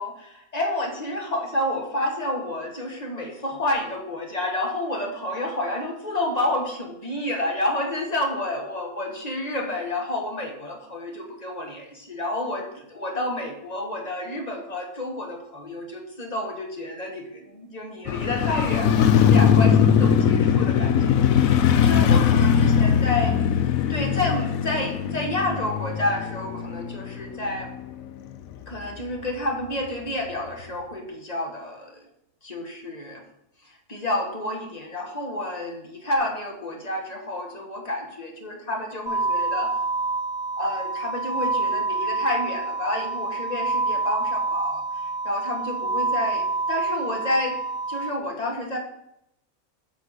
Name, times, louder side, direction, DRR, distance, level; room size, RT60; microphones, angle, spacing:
voice 1, 0.0-23.4 23.9-27.7 28.7-32.0 32.4-33.2 33.6-39.7 40.6-47.6 47.9-48.8, left 1 dB, 30° left, 2 dB, 1.4 m, -30 dB
Motorcycle, 18.1-28.2 28.5-28.6, left 8 dB, 70° left, 1.0 m, -20 dB
sound 1, 39.1-48.1, right 3 dB, 5° right, 0.7 m, -27 dB
8.0 x 4.2 x 6.4 m, 0.82 s
omnidirectional pair, 1.6 m